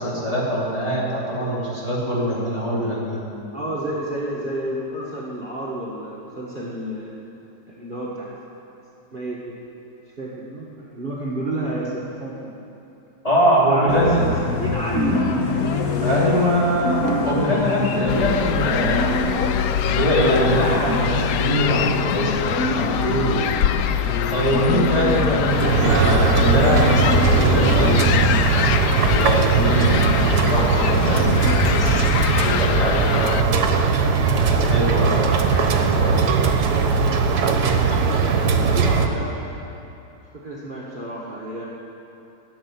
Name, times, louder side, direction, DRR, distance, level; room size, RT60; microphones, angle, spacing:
voice 1, 0.0-3.2 13.2-14.2 16.0-19.2 19.9-23.5 24.3-28.5 29.1-33.5 34.3-36.7, equal, 20° left, -8 dB, 3.6 m, -23 dB
voice 2, 3.5-7.1 7.7-8.3 9.1-9.6 10.2-12.6 13.7-15.4 38.2-39.3 40.3-41.7, right 1 dB, 30° right, -6 dB, 1.7 m, -30 dB
sound 1, 13.9-28.4, left 4 dB, 60° left, 1.4 m, -25 dB
sound 2, 18.1-33.4, left 10 dB, 80° left, 1.2 m, -24 dB
sound 3, 25.4-39.1, right 5 dB, 70° right, 1.5 m, -19 dB
14.5 x 7.6 x 9.6 m, 2.9 s
omnidirectional pair, 1.8 m